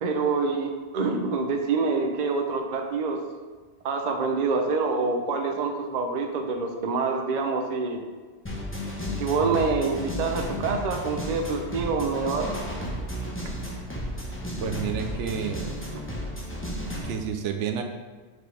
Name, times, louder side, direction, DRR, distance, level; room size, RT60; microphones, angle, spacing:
voice 1, 0.0-3.2 3.8-8.0 9.2-12.6, right 4 dB, 45° right, 3 dB, 0.6 m, -26 dB
sound 1, 8.5-17.2, equal, 10° left, 0.8 m, -33 dB
voice 2, 14.6-15.7 17.0-17.8, right 7 dB, 75° right, 5 dB, 0.9 m, -30 dB
6.1 x 4.9 x 3.4 m, 1.4 s
omnidirectional pair, 1.3 m